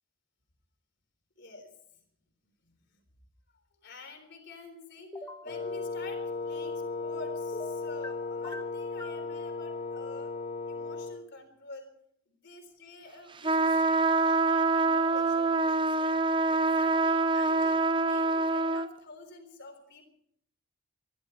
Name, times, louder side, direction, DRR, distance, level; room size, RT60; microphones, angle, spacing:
voice 1, 1.4-1.7 2.6-3.0 3.5-10.3 10.7-11.9 12.4-16.2 16.5-20.1, left 3 dB, 60° left, 5 dB, 3.9 m, -48 dB
sound 1, 5.1-5.5 7.5-8.1 8.4-9.2, left 1 dB, 15° left, 1.3 m, -42 dB
Wind instrument woodwind instrument, 5.4-11.2, left 3 dB, 35° left, 2.6 m, -36 dB
sound 2, 13.4-18.9, right 3 dB, 25° right, 0.6 m, -25 dB
25.0 x 12.0 x 4.5 m, 0.68 s
head